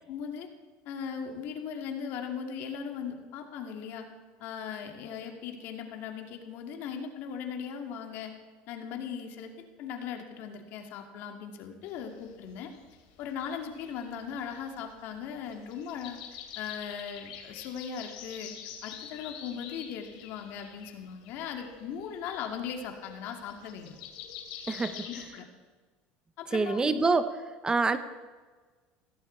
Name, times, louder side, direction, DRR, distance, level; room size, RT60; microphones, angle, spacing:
voice 1, 0.1-0.5 0.9-4.1 4.4-8.3 8.7-12.7 13.2-18.5 18.8-24.0 25.1-25.5 26.4-27.0, left 7 dB, 65° left, 4 dB, 2.3 m, -38 dB
sound 1, 11.8-25.2, left 8 dB, 85° left, 2.9 m, -47 dB
voice 2, 24.7-25.1 26.5-27.3 27.6-28.0, right 4 dB, 20° right, 11 dB, 0.9 m, -26 dB
16.5 x 16.0 x 4.6 m, 1.4 s
supercardioid pair, 110°, 4 cm